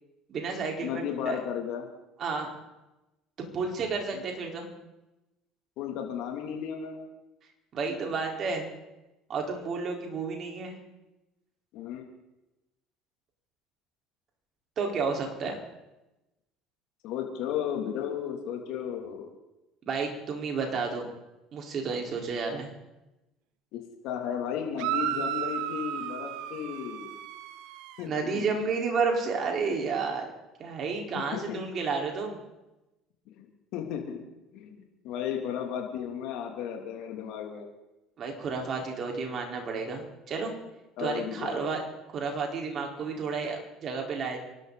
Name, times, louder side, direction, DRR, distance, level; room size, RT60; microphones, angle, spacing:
voice 1, 0.3-1.4 2.2-2.5 3.5-4.7 7.7-8.7 9.3-10.8 14.8-15.6 19.9-21.1 21.5-22.7 28.0-30.3 30.6-32.4 38.2-40.5 41.0-41.8 42.1-44.4, right 4 dB, 50° right, 1 dB, 4.3 m, -31 dB
voice 2, 0.8-1.9 4.1-4.2 5.8-7.0 11.7-12.0 17.0-19.3 23.7-27.1 28.0-28.6 31.1-31.6 33.4-34.2 34.5-34.8 35.0-37.7 41.0-41.6, left 9 dB, 65° left, 2 dB, 2.8 m, -34 dB
sound 1, 24.8-28.0, right 10 dB, 70° right, 0.9 m, -33 dB
25.5 x 12.5 x 4.1 m, 0.98 s
hypercardioid pair, 70°, 0 cm